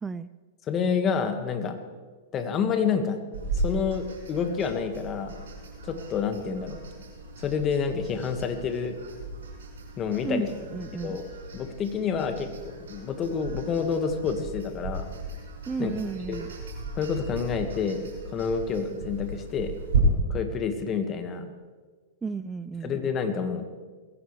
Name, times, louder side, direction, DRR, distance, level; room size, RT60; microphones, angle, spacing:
voice 1, 0.7-1.8 2.3-3.2 3.5-5.4 5.8-6.8 7.4-9.0 10.0-10.5 11.0-11.2 11.5-15.1 15.8-15.9 16.3-16.4 17.0-18.0 18.3-19.7 20.3-21.5 22.8-23.7, left 6 dB, 30° left, 7 dB, 1.8 m, -28 dB
sound 1, 3.3-20.0, right 4 dB, 70° right, 6.3 m, -36 dB
voice 2, 10.2-11.2 15.7-16.5 22.2-23.0, right 5 dB, 15° right, 15 dB, 0.4 m, -33 dB
22.0 x 15.5 x 3.3 m, 1.4 s
hypercardioid pair, 105°, 0 cm